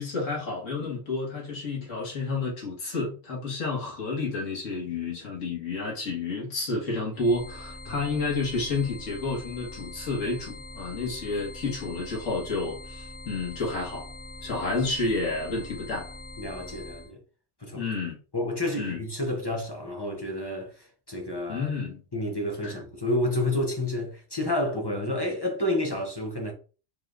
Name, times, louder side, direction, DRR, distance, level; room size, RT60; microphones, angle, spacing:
voice 1, 0.0-14.1 14.4-16.1 17.7-18.2 18.8-19.0 21.5-22.0 22.6-22.8, left 3 dB, 90° left, 1.9 m, -30 dB
sound 1, 7.1-17.1, left 2 dB, 65° left, 1.6 m, -43 dB
voice 2, 16.4-17.2 17.6-17.8 18.3-21.7 22.1-26.5, left 1 dB, 25° left, 0.7 m, -30 dB
4.6 x 3.3 x 2.5 m
omnidirectional pair, 1.3 m